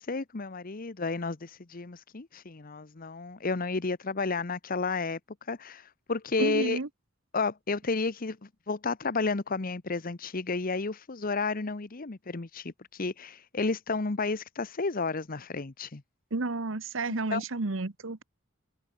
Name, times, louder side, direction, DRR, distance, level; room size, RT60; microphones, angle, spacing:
voice 1, 0.0-5.2 5.5-6.8 7.3-16.0 17.3-17.4, left 3 dB, 45° left, 0.9 m, -32 dB
voice 2, 6.4-6.9 16.3-18.2, right 3 dB, 70° right, 1.2 m, -31 dB
head